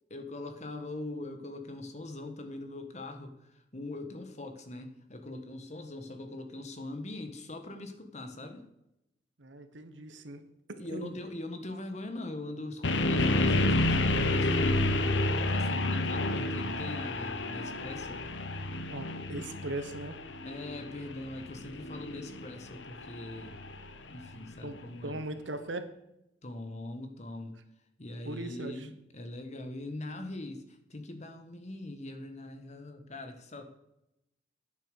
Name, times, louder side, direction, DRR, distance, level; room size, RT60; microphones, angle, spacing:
voice 1, 0.1-8.6 10.7-15.2 15.4-18.3 20.4-23.5 24.1-25.2 26.4-27.6 28.0-33.6, left 2 dB, 40° left, 7 dB, 1.4 m, -41 dB
voice 2, 9.4-10.4 10.7-11.1 18.9-20.2 24.6-24.8 25.0-25.9 28.2-28.9, right 2 dB, 85° right, 10 dB, 1.2 m, -39 dB
sound 1, 12.8-24.8, left 2 dB, 75° left, 0.9 m, -30 dB
9.6 x 7.2 x 6.7 m, 0.86 s
head